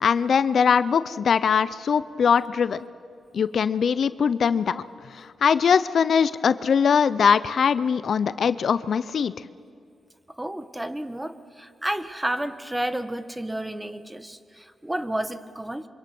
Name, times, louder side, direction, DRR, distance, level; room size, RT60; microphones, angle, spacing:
voice 1, 0.0-2.9 3.3-4.8 5.1-9.3, left 6 dB, 65° left, 15 dB, 0.6 m, -21 dB
voice 2, 10.4-15.9, right 1 dB, 10° right, 11 dB, 1.5 m, -31 dB
26.5 x 25.0 x 6.1 m, 2.2 s
cardioid pair, 60°, 0 cm